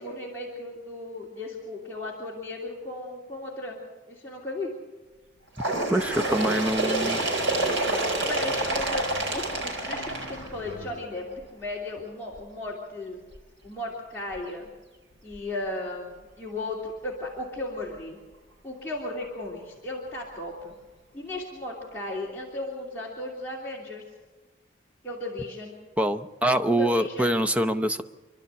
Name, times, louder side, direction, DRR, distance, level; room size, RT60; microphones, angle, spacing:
voice 1, 0.0-3.8 4.1-4.7 7.8-13.2 13.6-14.6 15.2-18.2 18.6-20.7 21.1-24.0 25.0-25.8 26.7-27.3, left 2 dB, 10° left, -6 dB, 2.9 m, -35 dB
Bird, 5.6-11.0 11.9-12.0 12.4-12.5 13.3-13.4 14.3-14.4 15.3-15.4, right 2 dB, 65° right, 5.2 m, -28 dB
voice 2, 5.9-7.2 26.0-28.0, right 1 dB, 5° right, 7 dB, 0.6 m, -24 dB
sound 1, 6.0-11.0, left 1 dB, 25° right, 3.2 m, -45 dB
27.0 x 12.0 x 8.2 m, 1.3 s
head